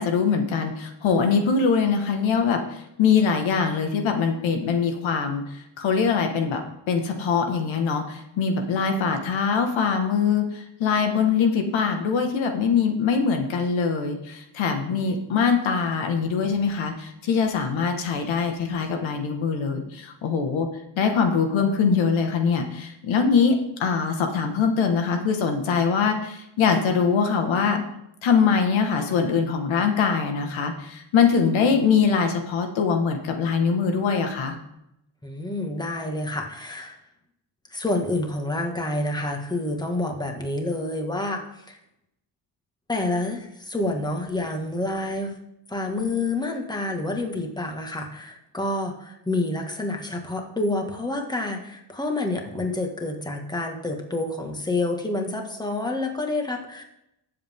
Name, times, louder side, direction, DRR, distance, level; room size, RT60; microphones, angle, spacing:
voice 1, 0.0-20.7 21.0-27.8 28.2-34.6, left 5 dB, 90° left, 4 dB, 1.8 m, -23 dB
voice 2, 35.2-37.0 37.7-41.8 42.9-45.4 45.7-56.8, left 2 dB, 10° left, 2 dB, 1.9 m, -28 dB
19.5 x 7.8 x 3.7 m, 0.82 s
cardioid pair, 120°, 45 cm